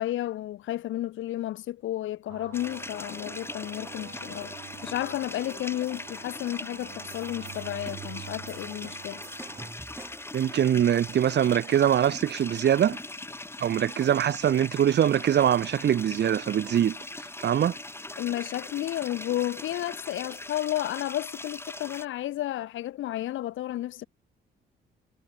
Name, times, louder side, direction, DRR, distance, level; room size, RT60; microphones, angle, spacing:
voice 1, 0.0-4.5 4.8-9.2 18.2-24.1, left 14 dB, 80° left, 1.4 m, -32 dB
sound 1, 2.3-9.7, right 14 dB, 85° right, 2.7 m, -46 dB
sound 2, 2.5-22.1, left 2 dB, 10° left, 1.8 m, -41 dB
sound 3, 7.1-10.4, right 2 dB, 15° right, 7.4 m, -48 dB
voice 2, 10.3-13.0 13.6-17.0 17.4-17.8, right 10 dB, 60° right, 1.5 m, -23 dB
cardioid pair, 90°, 20 cm